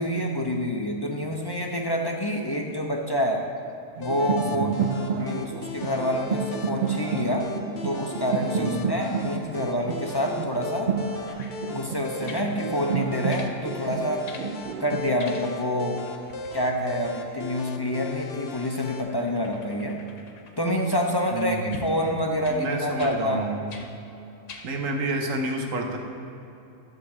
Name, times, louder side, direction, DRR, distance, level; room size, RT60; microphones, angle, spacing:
voice 1, 0.0-3.5 4.0-4.7 5.2-7.5 7.8-10.9 11.7-14.3 14.8-16.0 16.5-20.0 20.6-23.5, equal, 30° left, 0 dB, 0.4 m, -27 dB
sound 1, 4.0-19.0, left 4 dB, 55° left, 0.8 m, -39 dB
sound 2, 4.0-15.0, right 5 dB, 65° right, 0.5 m, -30 dB
voice 2, 4.5-4.8 8.6-8.9 21.3-22.0 22.5-23.8 24.6-26.0, right 2 dB, 85° right, 2 dB, 1.4 m, -29 dB
sound 3, 11.3-11.6 12.3-12.5 13.3-13.5 14.3-14.5 15.2-15.7 16.0-21.1 21.7-21.9 22.4-22.6 23.0-23.2 23.7-23.9 24.5-24.7 25.3-25.4, left 4 dB, 75° left, 1.2 m, -44 dB
11.5 x 3.8 x 7.2 m, 2.8 s
omnidirectional pair, 1.3 m